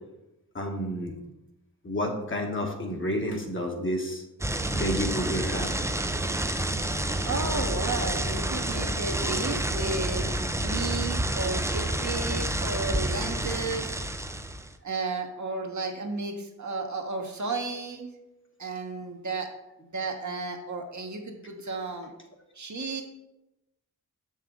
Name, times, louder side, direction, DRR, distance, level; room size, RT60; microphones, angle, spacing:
voice 1, 0.5-1.2 1.8-4.2 4.7-5.7, equal, 35° left, 2 dB, 1.2 m, -30 dB
sound 1, 4.4-14.7, right 1 dB, 10° right, 0.5 m, -29 dB
voice 2, 7.2-14.0 14.8-18.1 18.6-19.5 19.8-22.1 22.5-23.0, right 3 dB, 55° right, 3 dB, 1.1 m, -33 dB
6.5 x 5.6 x 3.7 m, 0.95 s
cardioid pair, 50°, 35 cm